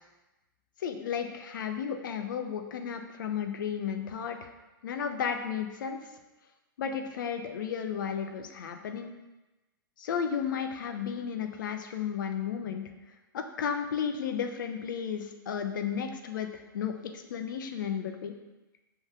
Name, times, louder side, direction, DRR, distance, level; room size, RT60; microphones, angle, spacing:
voice 1, 0.8-4.5 4.8-6.0 6.8-9.1 10.0-12.8 13.3-18.3, left 7 dB, 65° left, 6 dB, 0.7 m, -33 dB
5.2 x 3.9 x 5.9 m, 1.1 s
figure-of-eight pair, 105°, 12 cm